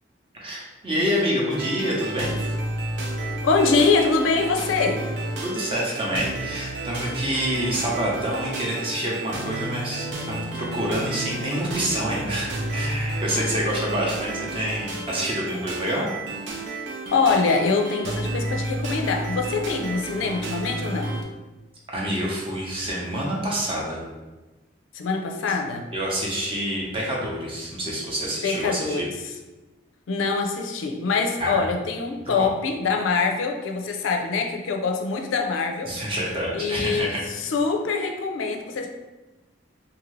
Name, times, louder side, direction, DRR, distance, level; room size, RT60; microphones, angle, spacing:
voice 1, 0.4-2.5 5.4-16.1 21.9-24.0 25.9-29.1 31.4-31.6 32.4-32.5 35.9-37.2, equal, 30° right, -4 dB, 0.7 m, -27 dB
sound 1, 1.5-21.2, right 2 dB, 65° right, 0.4 m, -31 dB
voice 2, 3.4-5.0 17.1-21.2 24.9-25.9 28.4-29.3 30.1-35.9 36.5-38.9, left 4 dB, 90° left, 3 dB, 0.4 m, -24 dB
2.6 x 2.6 x 3.1 m, 1.2 s
head